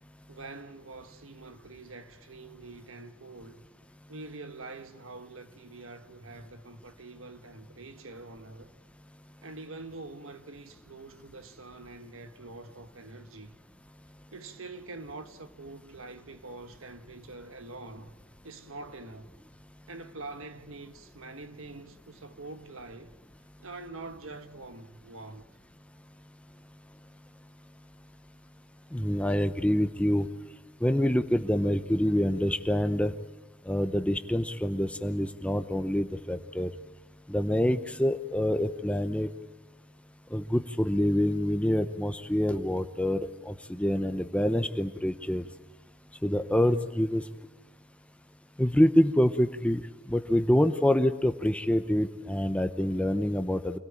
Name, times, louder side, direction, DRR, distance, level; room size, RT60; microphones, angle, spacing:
voice 1, 0.3-3.7 4.1-8.7 9.4-13.5 14.3-18.2 18.4-19.3 19.9-23.2 23.6-25.5, right 3 dB, 70° right, 1.5 m, -45 dB
voice 2, 28.9-30.3 30.8-33.1 33.7-36.7 37.3-39.3 40.3-45.5 46.2-47.2 48.6-49.8 50.1-53.8, equal, 5° left, 0.7 m, -26 dB
26.0 x 17.5 x 8.6 m
head